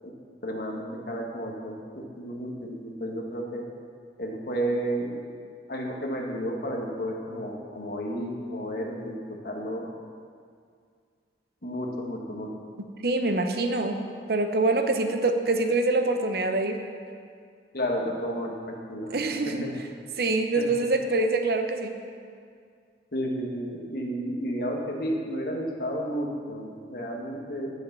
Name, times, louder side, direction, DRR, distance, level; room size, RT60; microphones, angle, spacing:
voice 1, 0.4-3.6 4.2-5.1 5.7-9.8 11.6-12.5 17.7-19.2 19.4-19.7 20.5-20.6 23.1-27.7, equal, 55° left, 0 dB, 1.4 m, -32 dB
voice 2, 13.0-14.0 14.3-16.8 19.1-19.7 20.2-21.9, right 2 dB, 55° right, 6 dB, 0.7 m, -25 dB
9.8 x 6.6 x 6.7 m, 2.2 s
head